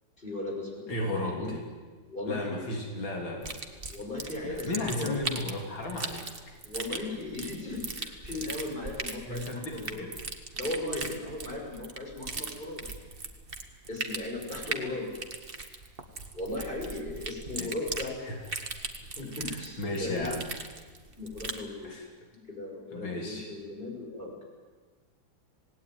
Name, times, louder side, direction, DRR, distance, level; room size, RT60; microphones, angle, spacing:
voice 1, 0.2-1.5 2.1-2.6 3.9-5.2 6.6-10.0 10.6-12.8 13.9-15.1 16.3-18.2 19.2-20.3 21.2-21.9 22.3-24.4, left 2 dB, 25° left, 0 dB, 6.7 m, -37 dB
voice 2, 0.9-1.7 2.3-3.6 4.4-6.5 9.3-10.2 17.6-17.7 18.2-18.4 19.4-20.5 21.8-22.1 22.9-23.5, left 1 dB, 80° left, 1 dB, 3.8 m, -35 dB
sound 1, 3.4-21.7, right 3 dB, 30° right, 1.9 m, -39 dB
27.0 x 19.0 x 9.6 m, 1.4 s
omnidirectional pair, 2.1 m